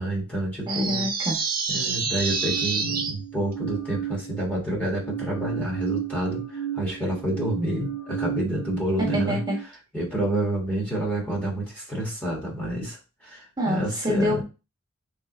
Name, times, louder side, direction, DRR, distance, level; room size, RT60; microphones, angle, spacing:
voice 1, 0.0-1.1 1.7-9.4 9.9-14.4, right 1 dB, 10° left, -4 dB, 1.5 m, -29 dB
voice 2, 0.7-1.4 9.0-9.5 13.6-14.4, equal, 20° right, -3 dB, 1.4 m, -26 dB
sound 1, 0.7-3.1, right 5 dB, 45° right, 0.8 m, -27 dB
sound 2, 2.3-4.6 5.0-9.6, right 10 dB, 60° left, 0.7 m, -33 dB
3.5 x 3.4 x 3.8 m, 0.30 s
head